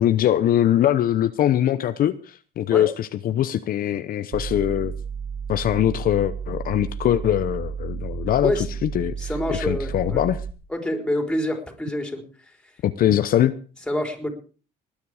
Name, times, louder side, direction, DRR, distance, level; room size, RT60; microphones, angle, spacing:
voice 1, 0.0-4.9 5.5-10.4 12.8-13.5, left 11 dB, 60° left, 11 dB, 0.8 m, -22 dB
sound 1, 4.3-10.5, right 6 dB, 55° right, 1.9 m, -32 dB
voice 2, 9.2-10.2 10.7-12.5 13.9-14.3, left 1 dB, 5° left, 3 dB, 4.1 m, -27 dB
20.0 x 10.0 x 4.9 m, 0.39 s
cardioid pair, 110°, 17 cm